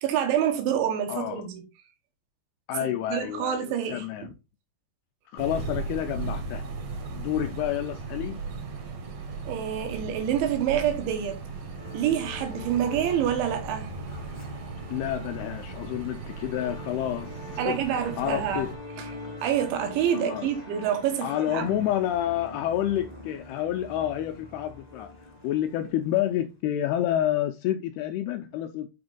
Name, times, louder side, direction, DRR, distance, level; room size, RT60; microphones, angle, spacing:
voice 1, 0.0-1.6 3.1-4.3 9.5-11.4 11.9-13.9 17.6-18.6 19.0-19.1 19.4-21.7, right 9 dB, 90° right, 3.6 m, -27 dB
voice 2, 1.1-1.4 2.7-4.3 5.3-6.7 7.1-8.4 14.9-18.7 20.1-20.5 21.2-28.9, left 12 dB, 85° left, 2.2 m, -29 dB
sound 1, 5.4-18.7, right 4 dB, 70° right, 1.6 m, -37 dB
Musical instrument, 11.8-26.4, left 2 dB, 30° left, 0.6 m, -44 dB
8.7 x 4.2 x 3.8 m
omnidirectional pair, 5.1 m